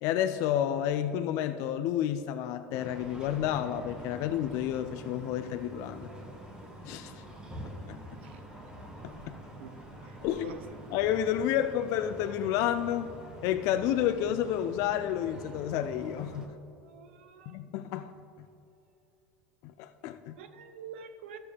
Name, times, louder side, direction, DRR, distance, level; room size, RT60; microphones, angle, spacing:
voice 1, 0.0-6.1 6.8-7.2 7.7-8.0 9.0-9.4 10.2-10.5 10.9-13.1 13.4-16.5 17.5-18.1 19.6-20.4, left 10 dB, 60° left, 9 dB, 0.4 m, -30 dB
sound 1, 2.7-16.5, right 1 dB, 15° right, 1.5 m, -46 dB
voice 2, 10.0-10.7 16.7-17.6 20.3-21.4, right 7 dB, 85° right, 9 dB, 0.7 m, -47 dB
13.0 x 6.8 x 3.4 m, 2.8 s
supercardioid pair, 105°, 6 cm